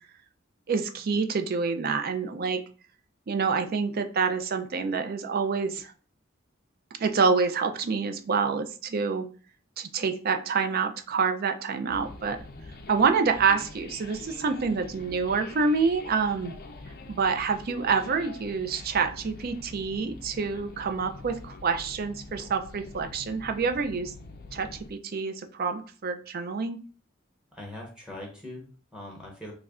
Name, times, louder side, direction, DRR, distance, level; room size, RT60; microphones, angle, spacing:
voice 1, 0.7-2.6 3.3-5.9 7.0-9.3 9.8-12.4 12.9-16.5 17.1-24.1 24.5-26.8, right 5 dB, 50° right, 7 dB, 0.4 m, -27 dB
sound 1, 11.9-24.9, left 2 dB, 50° left, 0.4 m, -45 dB
voice 2, 27.5-29.5, left 1 dB, 5° right, -1 dB, 0.8 m, -41 dB
3.1 x 2.4 x 3.5 m, 0.39 s
head